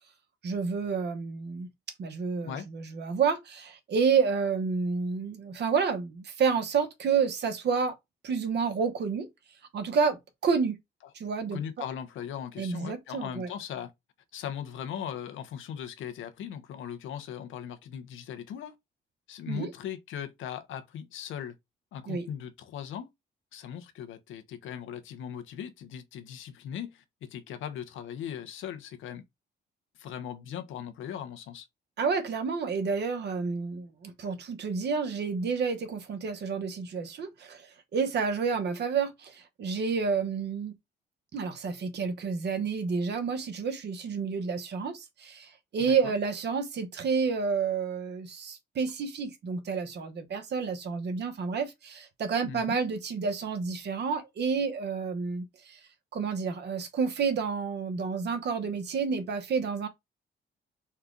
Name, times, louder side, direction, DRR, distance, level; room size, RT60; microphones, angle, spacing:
voice 1, 0.4-1.7 2.0-8.0 8.2-9.3 9.7-10.8 11.1-11.8 12.6-13.5 19.5-19.7 22.1-22.3 32.0-40.7 41.3-55.8 56.1-59.9, right 5 dB, 60° right, 1.0 m, -30 dB
voice 2, 11.5-13.9 14.3-18.8 19.3-21.6 21.9-23.1 23.5-29.2 30.0-31.7 45.8-46.1 52.4-52.8, left 9 dB, 80° left, 0.8 m, -39 dB
4.2 x 2.3 x 3.7 m
cardioid pair, 90°, 20 cm